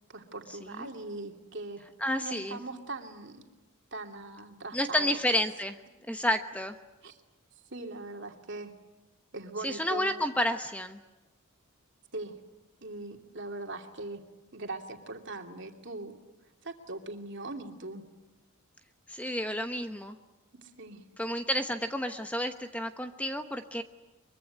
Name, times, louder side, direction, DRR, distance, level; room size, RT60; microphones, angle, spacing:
voice 1, 0.1-1.8 2.2-3.4 3.9-5.2 7.0-7.2 7.7-8.7 9.3-10.2 12.1-12.4 12.8-14.2 14.5-16.1 16.6-18.0 20.6-21.0, right 2 dB, 55° right, 4 dB, 2.8 m, -40 dB
voice 2, 2.0-2.6 4.7-5.8 6.1-6.7 9.6-11.0 19.1-20.2 21.2-23.8, left 1 dB, 5° left, 7 dB, 1.0 m, -30 dB
23.5 x 23.0 x 9.3 m, 1.1 s
head